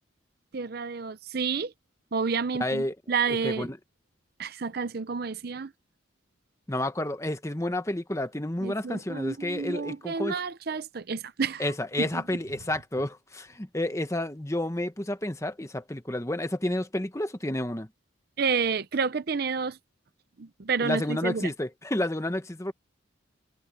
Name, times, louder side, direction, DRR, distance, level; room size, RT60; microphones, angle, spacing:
voice 1, 0.5-1.7 2.1-3.7 4.4-5.7 8.6-11.6 12.1-12.2 18.4-19.8 20.4-21.5, right 5 dB, 50° right, 0.6 m, -30 dB
voice 2, 2.6-2.9 3.3-3.8 6.7-10.3 11.6-17.9 20.8-22.7, left 1 dB, 15° left, 1.1 m, -30 dB
head